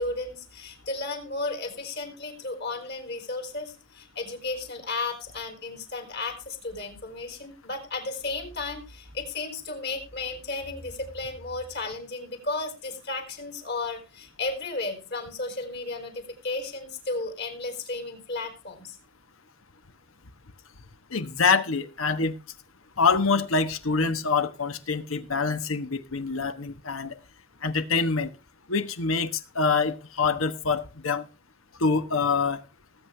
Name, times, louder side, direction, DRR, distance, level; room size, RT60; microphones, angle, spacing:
voice 1, 0.0-19.0, left 3 dB, 50° left, 3.8 m, -34 dB
voice 2, 21.1-22.3 23.0-27.1 27.6-28.3 28.7-31.2 31.8-32.6, left 4 dB, 85° left, 1.2 m, -25 dB
19.5 x 8.2 x 3.4 m
head